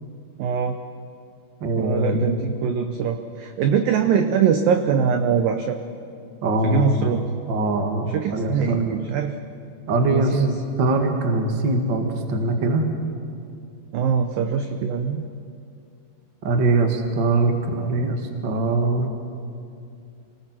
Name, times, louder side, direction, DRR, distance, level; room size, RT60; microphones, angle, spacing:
voice 1, 0.4-0.8 1.8-5.8 6.6-7.3 8.1-9.4 10.1-10.6 13.9-15.2, right 7 dB, 85° right, 7 dB, 2.0 m, -22 dB
voice 2, 1.6-2.2 6.4-7.1 7.5-8.8 9.9-10.4 10.8-12.9 16.4-19.1, right 2 dB, 60° right, 4 dB, 1.2 m, -22 dB
28.0 x 19.0 x 6.1 m, 2.4 s
omnidirectional pair, 5.2 m